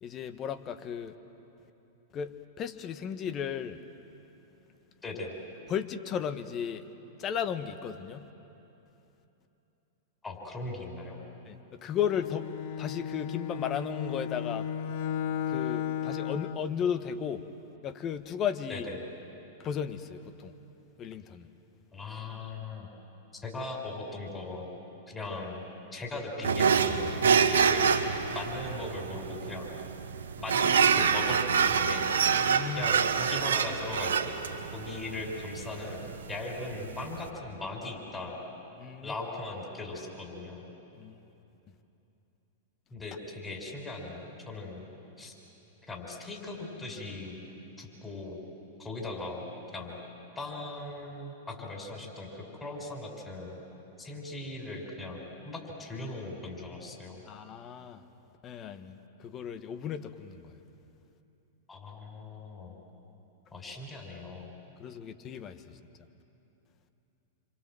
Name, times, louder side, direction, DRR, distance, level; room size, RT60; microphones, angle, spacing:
voice 1, 0.0-1.1 2.1-3.8 5.7-6.9 7.2-8.3 11.4-12.5 12.8-14.7 15.5-17.5 17.8-18.9 19.6-20.5 21.0-21.5 32.3-32.9 38.8-39.1 40.9-41.2 57.3-58.0 58.4-60.5 64.8-65.8, left 8 dB, 35° left, 9 dB, 1.4 m, -35 dB
voice 2, 5.0-5.3 10.2-11.2 18.7-19.0 21.9-22.9 23.3-24.7 25.1-25.6 25.9-27.9 28.3-29.7 30.3-32.1 32.7-34.3 34.7-36.0 36.3-38.3 39.0-40.6 42.9-44.9 45.2-45.3 45.9-47.4 47.8-48.4 48.8-49.4 49.7-50.0 50.4-53.5 54.0-55.2 55.4-57.2 61.7-62.7 63.5-64.5, left 2 dB, 15° left, 1 dB, 5.6 m, -39 dB
Bowed string instrument, 11.9-16.7, left 9 dB, 55° left, 0.8 m, -34 dB
sound 1, 26.4-37.3, right 6 dB, 80° right, 1.3 m, -27 dB
27.5 x 25.5 x 7.8 m, 3.0 s
hypercardioid pair, 105°, 0 cm